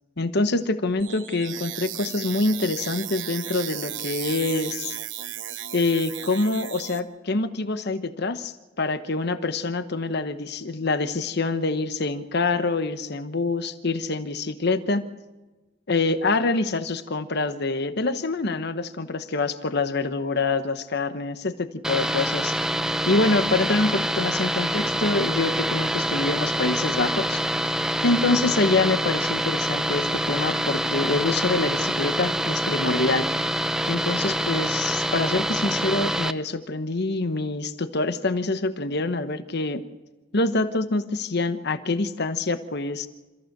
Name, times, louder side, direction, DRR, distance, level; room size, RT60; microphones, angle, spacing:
voice 1, 0.2-5.0 5.7-15.0 15.9-22.6 23.1-27.4 28.0-33.3 33.9-39.8 40.3-43.1, left 3 dB, 60° left, 11 dB, 1.0 m, -25 dB
sound 1, 1.0-7.0, right 11 dB, 70° right, 1.1 m, -35 dB
sound 2, 21.8-36.3, right 1 dB, 5° right, 0.6 m, -26 dB
27.5 x 14.5 x 6.6 m, 1.2 s
head